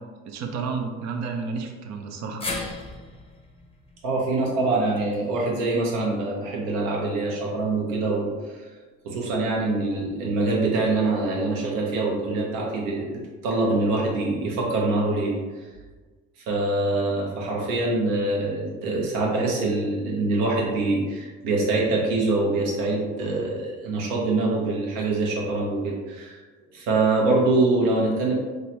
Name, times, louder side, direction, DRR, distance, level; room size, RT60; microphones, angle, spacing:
voice 1, 0.2-2.6, right 4 dB, 55° right, 4 dB, 0.6 m, -31 dB
sound 1, 2.4-6.7 7.0-7.1 8.3-8.4, left 2 dB, 15° left, 0.7 m, -38 dB
voice 2, 4.0-8.6 9.0-13.1 13.4-15.4 16.5-26.4 26.7-28.3, right 2 dB, 70° right, -3 dB, 1.0 m, -24 dB
3.7 x 2.2 x 2.9 m, 1.4 s
hypercardioid pair, 70°, 34 cm